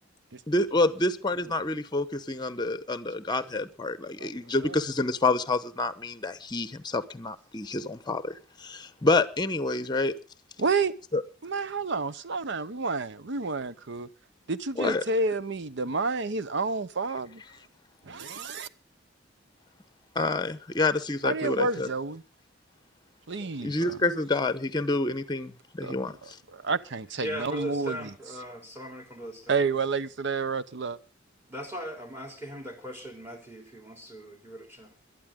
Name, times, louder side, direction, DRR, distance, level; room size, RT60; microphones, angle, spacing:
voice 1, 0.5-10.1 11.1-11.2 14.8-15.0 20.1-21.9 23.6-26.4, left 2 dB, 20° left, 0.9 m, -28 dB
voice 2, 10.6-10.9 11.4-14.1 14.5-17.4 18.0-18.7 21.2-22.2 23.3-24.0 25.8-28.1 29.5-31.0, right 4 dB, 60° right, 0.8 m, -30 dB
voice 3, 27.2-29.5 31.5-35.0, equal, 15° right, 3.2 m, -39 dB
22.0 x 12.0 x 3.7 m
head